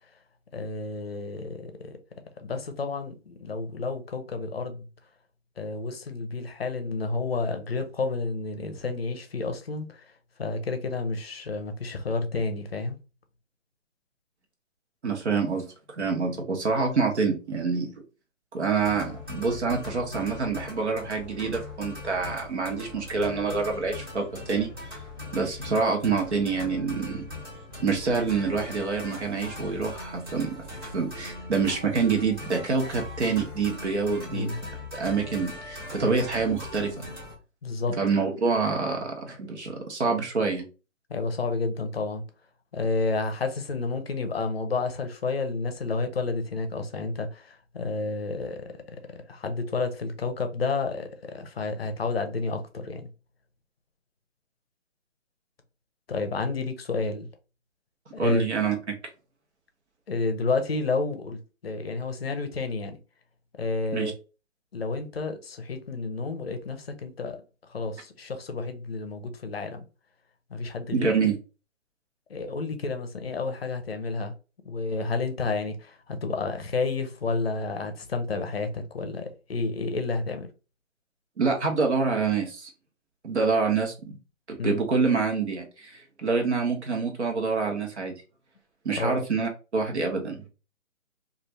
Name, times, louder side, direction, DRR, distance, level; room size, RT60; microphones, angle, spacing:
voice 1, 0.5-2.0 2.4-4.9 5.6-10.1 10.4-13.0 34.3-34.6 37.6-38.0 41.1-42.2 42.7-48.6 49.3-53.1 56.1-57.3 58.1-58.4 60.1-63.0 63.6-64.1 64.7-67.4 67.7-69.9 70.5-71.2 72.3-74.3 74.6-80.5 84.6-84.8 88.9-89.2, left 3 dB, 50° left, 0.6 m, -30 dB
voice 2, 15.0-17.9 18.5-24.7 25.3-27.3 27.8-34.5 34.9-37.1 38.0-40.7 58.2-58.9 63.9-64.1 70.9-71.4 81.4-82.7 83.2-83.9 84.6-88.1 88.8-90.4, right 5 dB, 55° right, 1.0 m, -26 dB
sound 1, 18.8-37.4, left 2 dB, 20° right, 0.9 m, -40 dB
2.5 x 2.5 x 3.1 m
hypercardioid pair, 165°, 39 cm